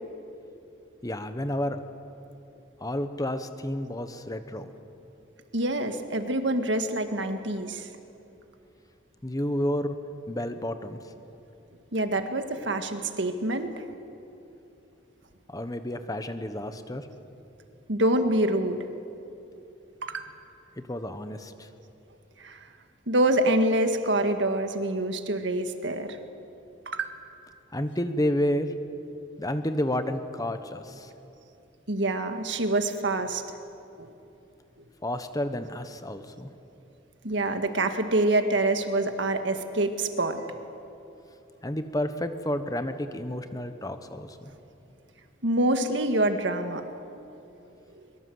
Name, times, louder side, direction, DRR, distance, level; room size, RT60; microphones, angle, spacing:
voice 1, 1.0-1.8 2.8-4.7 9.2-9.9 10.3-11.0 15.5-17.1 20.8-21.7 27.7-28.7 29.4-31.1 35.0-36.5 41.6-44.5, left 1 dB, 20° left, 9 dB, 1.2 m, -30 dB
voice 2, 5.5-7.9 11.9-13.8 17.9-18.8 20.0-20.3 22.4-22.6 23.1-26.2 26.9-27.1 31.9-33.4 34.0-34.1 37.2-40.4 45.4-46.8, right 1 dB, 70° right, 7 dB, 1.8 m, -26 dB
23.0 x 22.5 x 7.9 m, 2.8 s
head